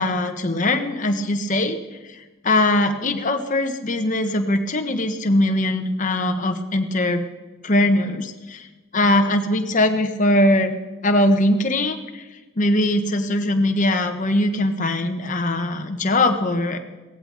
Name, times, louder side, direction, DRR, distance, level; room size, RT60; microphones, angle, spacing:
voice 1, 0.0-1.8 2.1-7.2 7.6-8.7 8.9-10.8 11.0-12.2 12.6-16.8, left 1 dB, 35° left, 6 dB, 1.2 m, -21 dB
17.0 x 14.5 x 4.1 m, 1.2 s
head